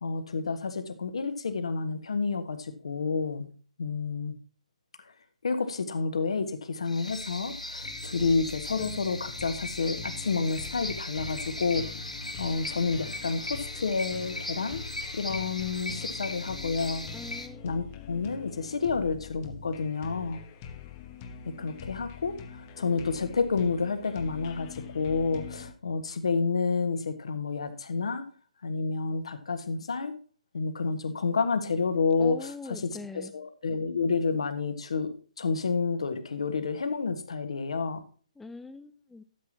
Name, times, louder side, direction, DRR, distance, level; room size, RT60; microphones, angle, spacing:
voice 1, 0.0-3.5 3.8-4.3 5.4-11.9 12.4-14.8 15.1-17.0 17.6-20.4 21.4-28.2 28.6-30.1 30.5-38.0, left 4 dB, 55° left, 9 dB, 1.5 m, -30 dB
sound 1, 6.9-17.5, left 1 dB, 80° left, 1.7 m, -38 dB
sound 2, 7.8-25.7, left 6 dB, 25° left, 1.0 m, -44 dB
voice 2, 17.1-17.8 32.2-33.3 38.4-39.2, left 3 dB, 5° left, 13 dB, 0.5 m, -42 dB
12.5 x 7.5 x 2.8 m, 0.39 s
figure-of-eight pair, 135°, 4 cm